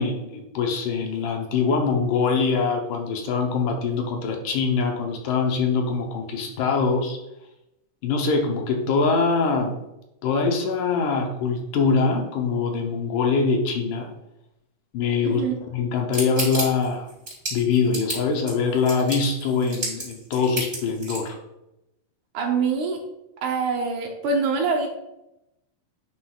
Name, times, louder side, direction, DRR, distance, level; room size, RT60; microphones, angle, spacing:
voice 1, 0.0-7.2 8.0-9.8 10.2-14.1 14.9-15.4 15.7-17.1 17.5-21.4, left 4 dB, 75° left, 2 dB, 2.3 m, -23 dB
sound 1, 16.1-21.3, right 2 dB, 20° right, 2.6 m, -31 dB
voice 2, 22.3-23.0 23.4-24.9, right 4 dB, 70° right, 2 dB, 2.1 m, -24 dB
9.8 x 6.0 x 2.4 m, 0.89 s
omnidirectional pair, 3.9 m